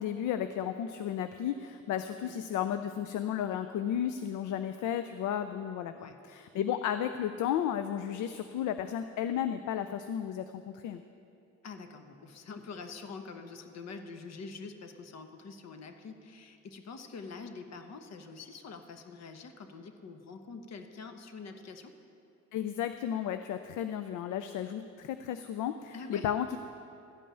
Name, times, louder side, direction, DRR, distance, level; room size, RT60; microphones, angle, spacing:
voice 1, 0.0-11.0 22.5-26.6, left 10 dB, 80° left, 9 dB, 0.5 m, -33 dB
voice 2, 11.6-21.9 25.9-26.3, left 4 dB, 60° left, 7 dB, 1.1 m, -45 dB
13.0 x 5.4 x 8.8 m, 2.6 s
cardioid pair, 90°, 30 cm